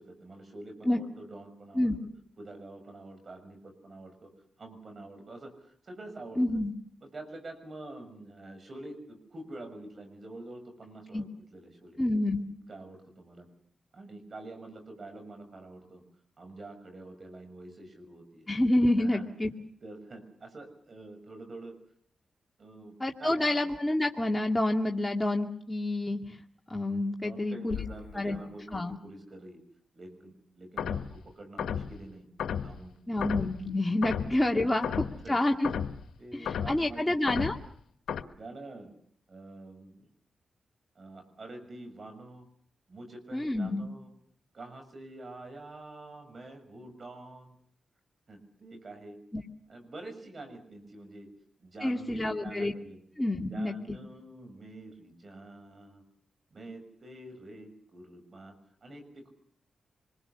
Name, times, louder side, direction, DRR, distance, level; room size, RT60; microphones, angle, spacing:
voice 1, 0.0-1.9 2.4-4.3 4.6-6.4 7.0-12.0 12.7-13.5 13.9-16.0 16.4-18.5 19.0-19.3 19.8-21.7 22.6-23.5 27.2-29.6 29.9-32.3 32.6-33.2 34.1-34.2 35.0-35.4 36.2-37.2 38.3-38.9 39.3-40.1 40.9-42.5 42.9-44.1 44.5-47.6 48.3-49.2 49.7-51.3 51.6-53.0 53.5-56.0 56.5-58.5 58.8-59.3, right 2 dB, 50° right, 6 dB, 6.3 m, -46 dB
voice 2, 6.4-6.7 11.1-11.2 12.0-12.5 18.5-19.5 23.0-26.4 26.7-27.8 28.1-28.4 28.7-29.0 33.1-35.7 36.3-37.5 43.3-43.9 49.3-49.4 51.8-52.7 53.2-54.0, left 1 dB, 20° left, 1 dB, 2.4 m, -28 dB
sound 1, 27.7-28.1 30.8-31.2 31.6-31.9 32.4-32.8 33.2-33.6 34.0-34.4 34.8-35.2 35.6-36.0 36.4-36.8 37.3-37.6 38.1-38.2, left 8 dB, 80° left, 1.4 m, -33 dB
26.0 x 21.5 x 6.9 m, 0.63 s
supercardioid pair, 45°, 0 cm